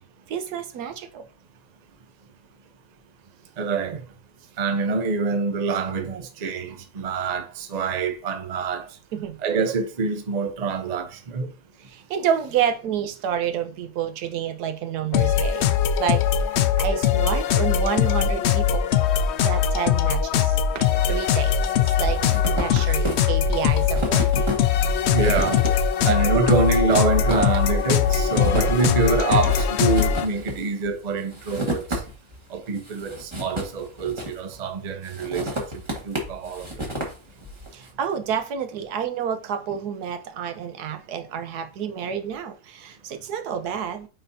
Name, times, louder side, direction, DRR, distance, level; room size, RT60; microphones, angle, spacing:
voice 1, 0.3-1.2 9.1-9.4 11.8-16.2 16.5-18.9 19.4-24.3 37.7-44.1, right 8 dB, 80° right, 1.3 m, -29 dB
voice 2, 3.6-4.0 4.6-8.9 9.4-11.5 25.1-25.6 26.0-32.0 32.5-36.7, right 4 dB, 45° right, 0.5 m, -25 dB
sound 1, 15.1-30.3, left 8 dB, 75° left, 0.6 m, -21 dB
sound 2, 20.8-21.4 21.6-32.4 32.8-34.6 35.0-37.7, equal, 20° right, 1.5 m, -32 dB
9.2 x 4.1 x 2.7 m
omnidirectional pair, 1.7 m